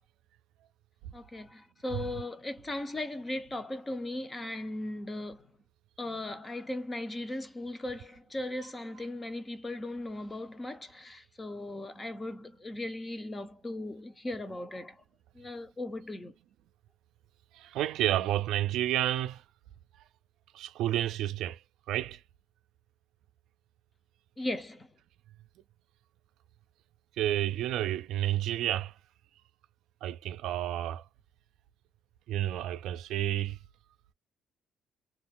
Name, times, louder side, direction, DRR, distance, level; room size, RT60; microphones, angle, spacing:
voice 1, 1.1-5.5 6.0-15.0 15.3-16.3 24.4-24.9, left 1 dB, 15° left, 0.5 m, -38 dB
voice 2, 17.5-19.4 20.5-21.6 21.9-22.2 27.2-28.9 30.0-31.0 32.3-33.6, right 13 dB, 75° right, 0.4 m, -30 dB
2.6 x 2.3 x 3.5 m
cardioid pair, 155°, 0 cm